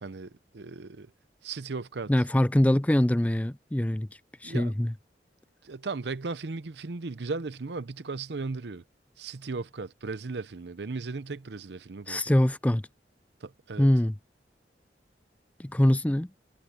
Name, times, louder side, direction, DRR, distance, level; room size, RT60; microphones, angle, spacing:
voice 1, 0.0-1.1 1.4-2.1 4.4-4.7 5.6-8.8 9.2-12.2 13.4-13.9, right 3 dB, 70° right, 0.7 m, -36 dB
voice 2, 2.1-4.1 4.4-4.9 12.1-12.8 13.8-14.2 15.6-16.3, left 1 dB, 10° left, 0.4 m, -23 dB
head